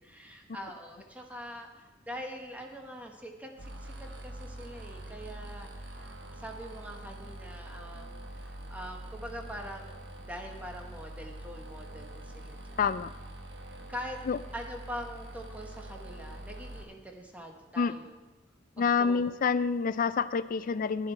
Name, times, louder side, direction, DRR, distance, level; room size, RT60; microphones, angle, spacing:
voice 1, 0.0-12.8 13.9-14.2 14.5-18.2 18.8-19.2, equal, 10° right, 2 dB, 1.0 m, -44 dB
sound 1, 3.6-16.8, right 1 dB, 65° right, 1.1 m, -44 dB
voice 2, 12.8-13.1 14.3-14.4 17.8-17.9 18.8-21.1, left 5 dB, 45° left, 14 dB, 0.4 m, -27 dB
11.0 x 9.9 x 4.4 m, 1.1 s
head